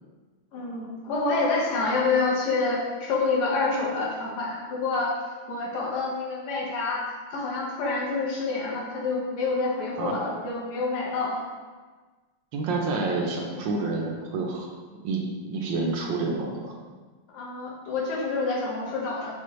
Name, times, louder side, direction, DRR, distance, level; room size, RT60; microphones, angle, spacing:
voice 1, 0.5-5.1 5.5-7.0 7.3-11.4 17.3-19.4, left 3 dB, 60° left, -3 dB, 1.3 m, -27 dB
voice 2, 12.5-14.7 15.0-16.7, right 3 dB, 75° right, 0 dB, 1.2 m, -28 dB
5.7 x 2.4 x 3.0 m, 1.4 s
omnidirectional pair, 2.2 m